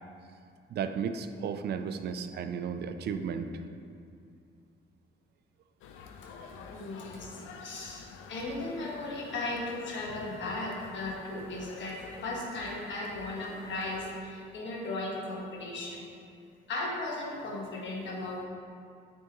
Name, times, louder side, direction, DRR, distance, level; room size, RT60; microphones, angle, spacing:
voice 1, 0.7-3.5, right 6 dB, 55° right, 9 dB, 0.4 m, -34 dB
sound 1, 5.8-14.2, left 5 dB, 85° left, 0.5 m, -48 dB
voice 2, 6.5-16.0 16.7-18.4, left 2 dB, 70° left, -3 dB, 1.4 m, -36 dB
9.2 x 3.5 x 3.0 m, 2.5 s
cardioid pair, 90°, 20 cm